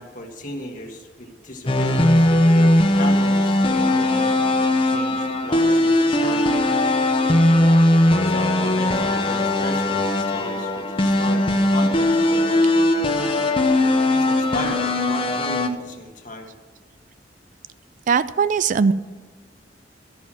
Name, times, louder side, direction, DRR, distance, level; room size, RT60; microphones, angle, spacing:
voice 1, 0.0-6.6 8.1-12.7 14.1-16.5, left 1 dB, 45° left, 1 dB, 1.6 m, -35 dB
sound 1, 1.7-15.7, left 1 dB, 30° left, 0.8 m, -19 dB
voice 2, 18.1-18.9, right 5 dB, 45° right, 15 dB, 0.3 m, -19 dB
13.0 x 5.9 x 7.5 m, 1.3 s
head